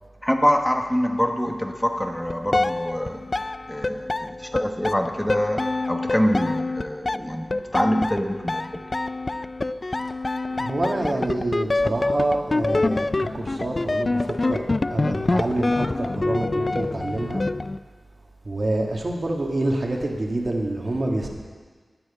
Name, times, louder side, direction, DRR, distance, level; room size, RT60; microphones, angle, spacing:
voice 1, 0.2-3.2 3.7-5.6 5.9-7.5 7.7-8.8, equal, 10° left, 3 dB, 1.1 m, -25 dB
sound 1, 2.2-17.8, left 2 dB, 45° left, 0.3 m, -26 dB
voice 2, 10.5-17.4 18.5-21.3, right 2 dB, 55° right, 0 dB, 1.9 m, -27 dB
11.0 x 6.4 x 8.8 m, 1.5 s
cardioid pair, 45°, 0 cm